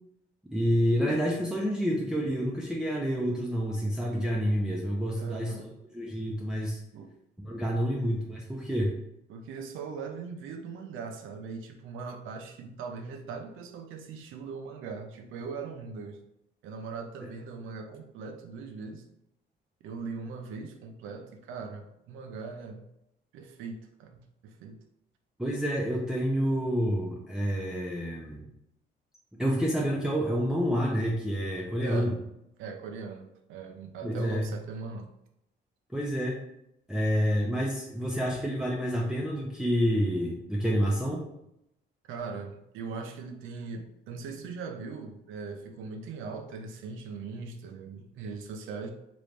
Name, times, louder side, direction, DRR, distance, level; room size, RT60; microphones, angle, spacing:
voice 1, 0.5-5.7 5.9-6.8 7.4-8.9 25.4-28.4 29.4-32.1 34.0-34.5 35.9-36.4 36.9-41.2, equal, 5° right, -3 dB, 0.5 m, -28 dB
voice 2, 5.2-5.7 6.9-7.1 9.3-16.2 16.6-19.0 19.8-22.8 23.3-24.8 31.8-32.1 32.6-35.1 42.1-48.9, right 4 dB, 85° right, 4 dB, 0.5 m, -40 dB
3.1 x 2.5 x 3.3 m, 0.81 s
cardioid pair, 90°, 20 cm